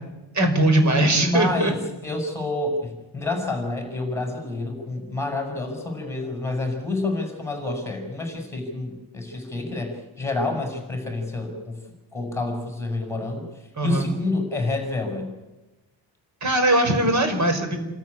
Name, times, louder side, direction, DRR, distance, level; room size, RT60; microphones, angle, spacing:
voice 1, 0.3-1.7 13.8-14.1 16.4-17.8, right 1 dB, 40° right, 6 dB, 5.3 m, -20 dB
voice 2, 1.2-1.8 2.0-11.8 12.1-13.4 13.8-15.3, left 2 dB, 5° left, 3 dB, 6.6 m, -28 dB
29.0 x 13.5 x 9.9 m, 1.1 s
cardioid pair, 140°, 45 cm